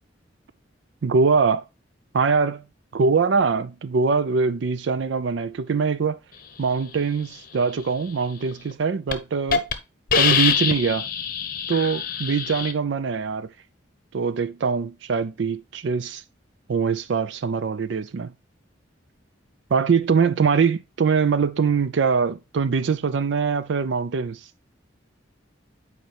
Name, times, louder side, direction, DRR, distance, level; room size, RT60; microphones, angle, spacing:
voice 1, 1.0-1.6 2.1-2.6 2.9-6.2 6.6-9.6 10.1-11.1 11.7-13.5 14.1-16.2 16.7-18.3 19.7-24.5, right 5 dB, 65° right, 0.4 m, -23 dB
Hiss, 8.5-8.7 9.1-9.2 9.5-9.7 10.1-12.7, left 7 dB, 45° left, 0.8 m, -23 dB
7.8 x 4.6 x 3.3 m
head